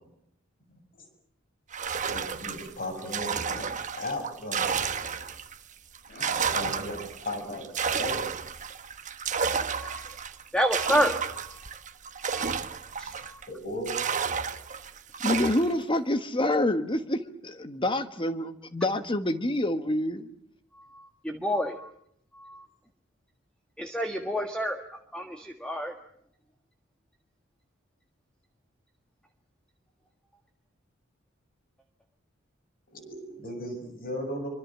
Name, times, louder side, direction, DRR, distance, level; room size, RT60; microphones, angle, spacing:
sound 1, 1.7-5.6 5.9-13.5 13.9-15.8, right 6 dB, 40° right, 1.2 m, -31 dB
voice 1, 2.1-3.6 4.0-5.3 6.1-8.4 13.5-14.0 32.9-34.5, left 1 dB, 45° left, 7 dB, 7.0 m, -36 dB
voice 2, 10.5-11.2 12.3-12.6 13.0-13.1 21.2-21.9 22.4-22.6 23.8-24.8 25.1-25.9, equal, 5° left, 4 dB, 1.6 m, -28 dB
voice 3, 15.2-20.3, left 1 dB, 25° left, 9 dB, 1.5 m, -27 dB
25.5 x 25.0 x 7.5 m, 0.72 s
head